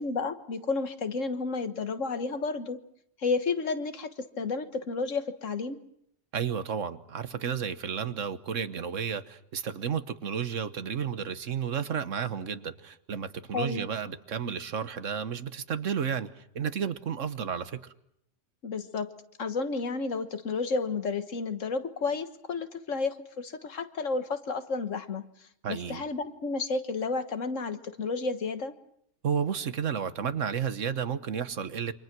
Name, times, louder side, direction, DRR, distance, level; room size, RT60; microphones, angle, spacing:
voice 1, 0.0-2.8 3.2-5.8 13.5-13.9 18.6-19.1 19.4-25.3 25.7-28.7, left 4 dB, 90° left, 1.8 m, -31 dB
voice 2, 6.3-17.8 25.6-26.0 29.2-31.9, right 7 dB, 85° right, 1.6 m, -32 dB
28.0 x 25.5 x 6.1 m
omnidirectional pair, 1.3 m